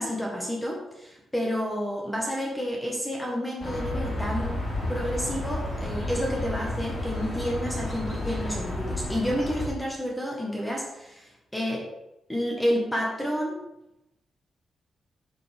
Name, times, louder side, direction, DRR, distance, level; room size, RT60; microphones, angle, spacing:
voice 1, 0.0-4.6 4.9-11.8 12.3-13.6, equal, 5° left, -2 dB, 1.3 m, -30 dB
sound 1, 3.6-9.7, left 1 dB, 35° left, 2.7 m, -31 dB
10.5 x 5.2 x 3.5 m, 0.91 s
wide cardioid pair, 160°, 0 cm